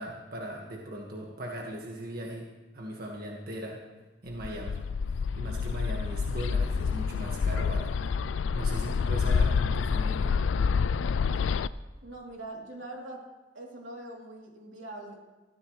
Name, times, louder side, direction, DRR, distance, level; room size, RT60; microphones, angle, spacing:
voice 1, 0.0-3.8 4.2-4.8 5.1-7.9 8.5-10.4, right 1 dB, 55° right, -1 dB, 1.7 m, -39 dB
Bird, 4.4-11.7, left 5 dB, 85° left, 0.4 m, -28 dB
voice 2, 12.0-13.2 13.5-15.1, right 1 dB, 85° right, -2 dB, 3.1 m, -42 dB
20.0 x 14.5 x 3.2 m, 1.2 s
head